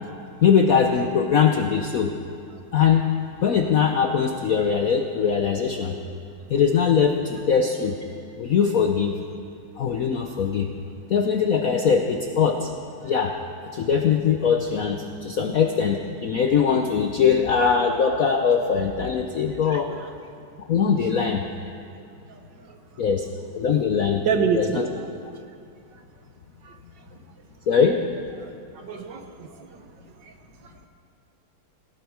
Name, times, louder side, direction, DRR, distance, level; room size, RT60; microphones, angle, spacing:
voice 1, 0.4-2.1 2.7-3.0 3.4-5.9 6.5-8.0 8.4-9.1 9.8-10.7 11.1-12.7 13.0-13.4 13.7-19.9 20.7-21.4 23.0-23.3 23.5-24.2 24.5-24.9 27.7-28.0, left 6 dB, 65° left, 4 dB, 0.8 m, -21 dB
voice 2, 24.2-24.8 28.8-29.5, right 5 dB, 60° right, 5 dB, 1.5 m, -25 dB
17.5 x 17.0 x 4.7 m, 2.5 s
omnidirectional pair, 2.4 m